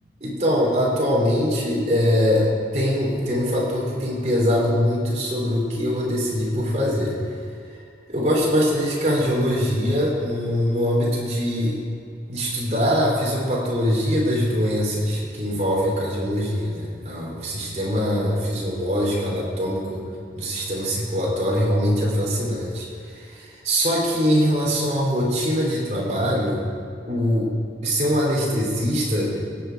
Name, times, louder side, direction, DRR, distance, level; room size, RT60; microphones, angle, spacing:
voice 1, 0.2-7.2 8.1-11.8 12.3-20.0 20.4-26.6 27.1-27.5 27.8-29.6, equal, 40° right, -4 dB, 3.2 m, -22 dB
17.0 x 8.6 x 4.6 m, 2.3 s
head